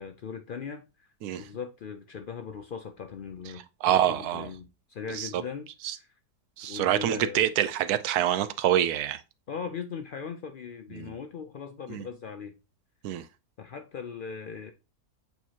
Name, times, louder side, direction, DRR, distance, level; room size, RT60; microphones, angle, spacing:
voice 1, 0.0-1.1 1.4-6.1 6.6-7.5 9.5-12.5 13.6-14.7, left 6 dB, 80° left, 0.4 m, -39 dB
voice 2, 3.8-4.5 5.1-5.3 5.8-5.9 6.6-9.2 11.0-11.1 11.9-12.0 13.0-13.2, right 11 dB, 80° right, 1.1 m, -26 dB
8.1 x 4.4 x 2.8 m
omnidirectional pair, 1.6 m